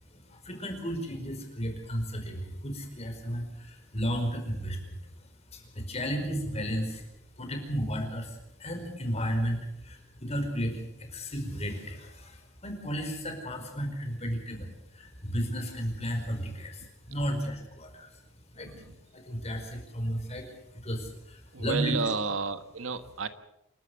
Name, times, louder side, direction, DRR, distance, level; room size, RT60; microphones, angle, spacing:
voice 1, 0.1-7.1 7.4-18.1 18.5-18.9 19.1-22.0, equal, 35° left, 4 dB, 5.0 m, -34 dB
voice 2, 18.5-19.0 21.5-23.3, right 4 dB, 80° right, 11 dB, 1.4 m, -32 dB
28.0 x 12.5 x 8.1 m, 0.86 s
head